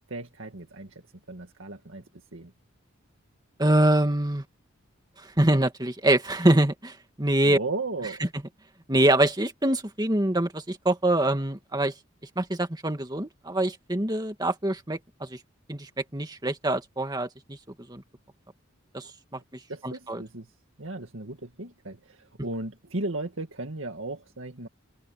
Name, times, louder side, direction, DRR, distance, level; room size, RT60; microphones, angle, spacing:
voice 1, 0.1-2.0 2.3-2.5 7.4-8.3 19.0-19.4 19.7-20.5 20.8-24.7, right 2 dB, 75° right, 2.1 m, -36 dB
voice 2, 3.6-4.4 5.2-7.6 8.9-11.9 12.4-15.4 15.7-17.6 17.9-18.0 18.9-19.4 19.8-20.2, right 1 dB, 20° right, 2.2 m, -24 dB
head